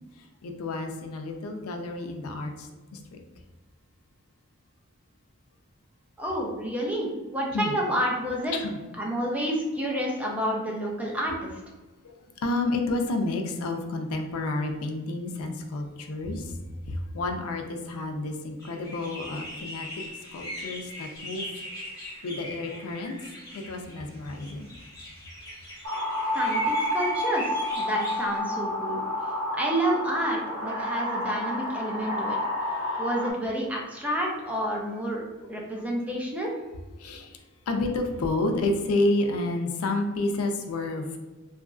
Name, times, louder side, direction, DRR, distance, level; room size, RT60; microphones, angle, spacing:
voice 1, 0.2-3.2 6.5-6.7 7.5-7.7 8.5-8.8 12.0-16.6 16.8-19.9 20.3-21.6 22.2-23.2 23.5-24.7 26.3-26.4 31.8-32.4 32.9-33.0 35.7-35.8 37.0-41.2, left 2 dB, 80° left, 5 dB, 0.4 m, -30 dB
voice 2, 6.2-8.5 9.0-11.5 26.3-29.0 29.5-32.4 33.0-35.2 35.5-36.5, equal, 5° right, -2 dB, 0.5 m, -29 dB
sound 1, 18.6-28.4, left 1 dB, 15° left, 1.0 m, -40 dB
sound 2, 25.8-33.3, left 1 dB, 65° right, 0.6 m, -29 dB
2.9 x 2.4 x 2.4 m, 1.2 s
head